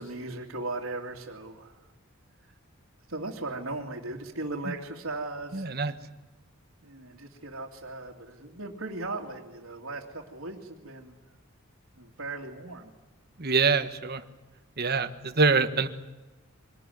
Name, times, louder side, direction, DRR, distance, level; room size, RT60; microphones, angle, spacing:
voice 1, 0.0-1.8 3.1-5.7 6.8-11.1 12.0-12.9, right 2 dB, 80° right, -3 dB, 2.7 m, -37 dB
voice 2, 5.5-5.9 13.4-14.2 14.8-15.9, right 4 dB, 50° right, 9 dB, 1.4 m, -25 dB
24.5 x 19.0 x 9.4 m, 1.1 s
head